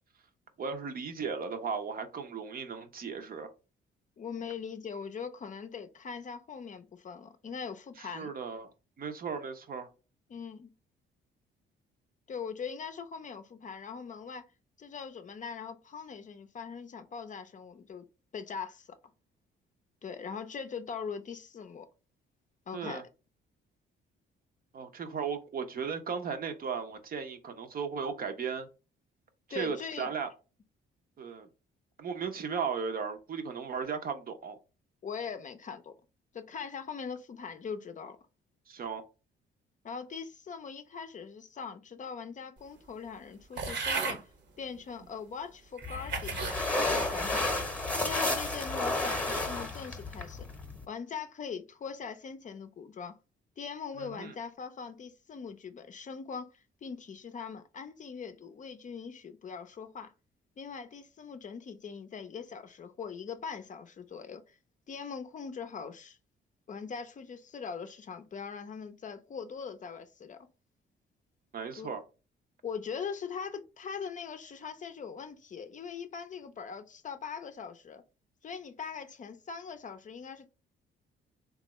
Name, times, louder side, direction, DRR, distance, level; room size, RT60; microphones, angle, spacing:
voice 1, 0.6-3.5 8.0-8.7 9.0-9.9 22.7-23.0 24.7-28.7 29.5-30.3 31.2-31.5 32.0-34.6 38.7-39.0 54.0-54.3 71.5-72.0, right 6 dB, 45° right, 0.7 m, -36 dB
voice 2, 4.2-8.3 10.3-10.7 12.3-14.4 14.8-18.1 18.3-18.9 20.0-21.9 22.7-23.0 29.5-30.1 35.0-35.9 36.3-38.2 39.8-44.2 44.6-46.5 46.8-47.5 48.0-50.5 50.9-53.2 53.6-60.1 60.6-64.5 64.9-66.2 66.7-70.5 71.8-71.9 72.6-78.0 78.4-80.5, left 6 dB, 40° left, 0.5 m, -41 dB
sound 1, 43.6-44.2 45.0-45.1 45.8-46.6 47.2-47.6, right 4 dB, 65° right, 1.0 m, -35 dB
sound 2, 45.8-50.8, left 2 dB, 5° left, 0.9 m, -32 dB
3.3 x 2.4 x 3.0 m
cardioid pair, 90°, 20 cm